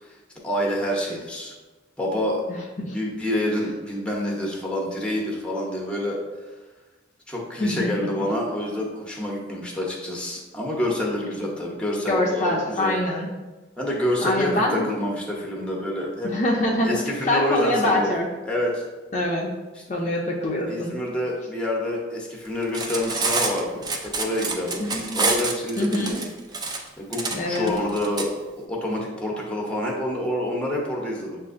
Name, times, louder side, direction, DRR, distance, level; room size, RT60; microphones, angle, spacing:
voice 1, 0.4-1.5 2.0-2.4 2.9-6.2 7.3-12.9 13.8-16.3 16.8-18.1 18.5-18.8 19.8-20.1 20.7-24.8 25.1-26.2 27.0-28.3 28.7-31.4, left 1 dB, 5° left, -2 dB, 0.8 m, -27 dB
voice 2, 7.6-8.1 12.1-13.3 14.2-14.9 16.2-16.9 17.3-18.3 19.1-19.5 19.9-20.9 24.9-25.2 25.8-26.2 27.3-27.7, left 1 dB, 40° left, -2 dB, 0.5 m, -24 dB
Cutlery silverware, 22.6-28.3, right 3 dB, 25° right, 0.4 m, -27 dB
7.0 x 2.5 x 2.5 m, 1.2 s
head